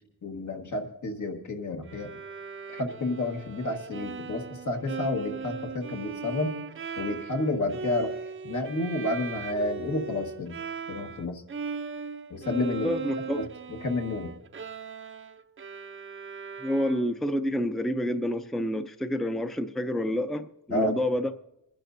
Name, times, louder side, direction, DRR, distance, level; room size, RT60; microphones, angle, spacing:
voice 1, 0.2-2.1 2.7-6.6 7.0-8.1 8.4-10.6 10.9-11.4 12.3-12.9 13.3-13.4 13.8-14.3 20.7-20.9, left 2 dB, 65° left, 1.6 m, -30 dB
Bowed string instrument, 1.9-11.2 11.5-17.3, right 5 dB, 40° right, 0.6 m, -38 dB
voice 2, 12.8-13.4 16.6-21.4, equal, ahead, 0.5 m, -28 dB
26.0 x 10.5 x 2.7 m
wide cardioid pair, 95°, 32 cm